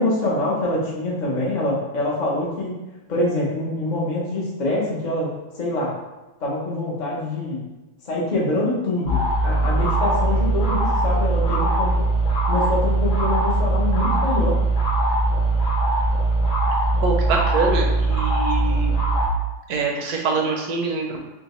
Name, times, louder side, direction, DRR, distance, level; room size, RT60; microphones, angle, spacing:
voice 1, 0.0-2.7 3.1-5.3 5.5-5.9 6.4-7.6 8.0-12.1 12.4-14.6, left 1 dB, 65° left, -5 dB, 0.4 m, -25 dB
sound 1, 9.1-19.3, right 2 dB, 90° left, 2.2 m, -20 dB
voice 2, 17.0-18.9 19.7-21.2, right 4 dB, 70° right, 1 dB, 1.0 m, -24 dB
5.7 x 2.1 x 3.0 m, 1.0 s
omnidirectional pair, 2.1 m